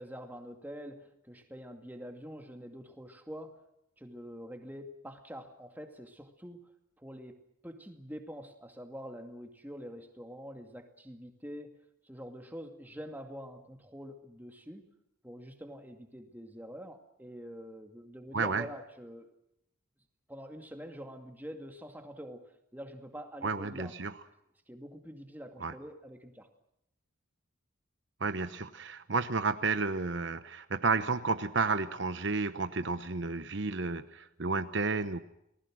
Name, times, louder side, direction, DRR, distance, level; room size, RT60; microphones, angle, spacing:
voice 1, 0.0-3.6 4.0-6.6 7.0-11.8 12.0-14.9 15.2-19.3 20.3-24.0 24.7-26.5, equal, 10° right, 4 dB, 2.2 m, -46 dB
voice 2, 18.3-18.6 23.4-24.1 25.6-25.7 28.2-35.2, right 4 dB, 60° right, 10 dB, 1.0 m, -31 dB
29.5 x 20.0 x 6.3 m, 0.78 s
head